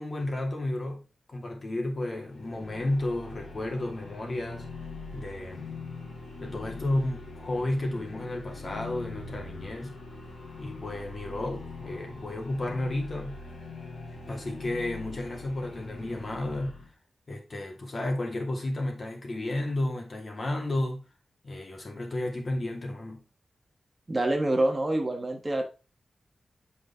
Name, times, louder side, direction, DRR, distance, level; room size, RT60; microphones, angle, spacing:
voice 1, 0.0-4.7 5.1-5.7 6.4-10.0 10.6-13.4 14.3-16.8 17.3-21.0 21.4-23.2, left 1 dB, 45° left, 2.4 m, -32 dB
sound 1, 2.1-16.9, left 3 dB, 75° left, 2.7 m, -42 dB
voice 2, 24.1-25.6, right 1 dB, 25° right, 1.2 m, -26 dB
7.8 x 5.3 x 3.5 m
wide cardioid pair, 105°, 0 cm